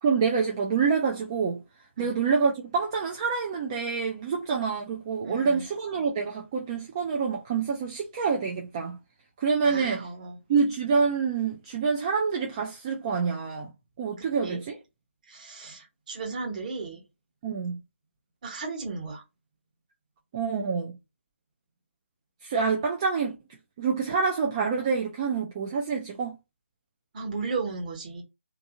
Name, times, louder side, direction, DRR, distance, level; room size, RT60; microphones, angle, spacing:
voice 1, 0.0-9.0 9.4-10.0 10.5-13.7 14.0-14.8 17.4-17.8 20.3-21.0 22.4-23.4 23.8-26.4, right 5 dB, 20° right, 0.3 m, -27 dB
voice 2, 5.2-5.6 9.6-10.4 14.4-14.6 15.3-17.0 18.4-19.2 27.1-28.2, right 4 dB, 35° right, 1.1 m, -35 dB
2.6 x 2.6 x 2.5 m
figure-of-eight pair, 155°, 7 cm